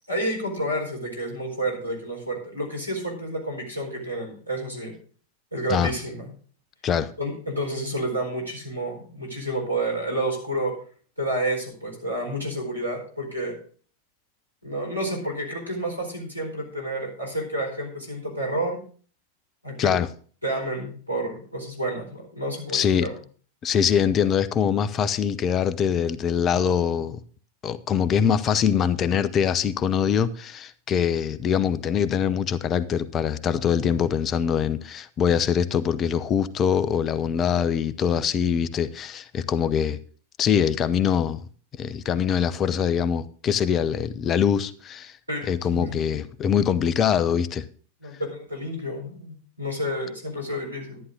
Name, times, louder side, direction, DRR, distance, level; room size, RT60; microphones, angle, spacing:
voice 1, 0.1-4.9 5.5-6.3 7.2-10.7 11.2-13.5 14.6-18.8 19.6-19.9 20.4-23.1 45.3-46.0 48.0-51.0, right 1 dB, 90° right, 4.4 m, -30 dB
voice 2, 22.7-23.1 23.6-27.2 27.6-40.0 40.4-41.4 41.8-45.1 45.5-47.7, left 8 dB, 30° left, 0.7 m, -23 dB
11.5 x 11.0 x 3.7 m
figure-of-eight pair, 90°, 0 cm